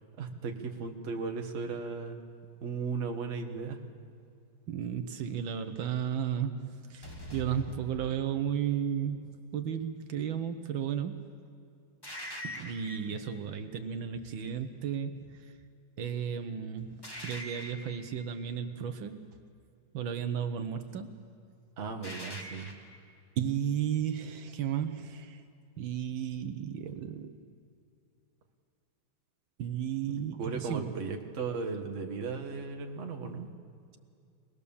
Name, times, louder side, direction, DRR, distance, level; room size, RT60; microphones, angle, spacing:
voice 1, 0.2-2.2 2.6-3.8 21.8-22.7 30.1-33.5, right 4 dB, 40° right, 3 dB, 1.5 m, -36 dB
voice 2, 4.7-11.2 12.4-15.5 16.0-19.3 19.9-21.2 23.4-25.4 25.8-27.3 29.6-30.9, right 8 dB, 75° right, 8 dB, 1.6 m, -34 dB
sound 1, 7.0-8.6 12.0-13.2 17.0-18.2 22.0-23.0, left 1 dB, 10° left, 1.7 m, -43 dB
24.5 x 19.5 x 7.0 m, 2.4 s
omnidirectional pair, 2.2 m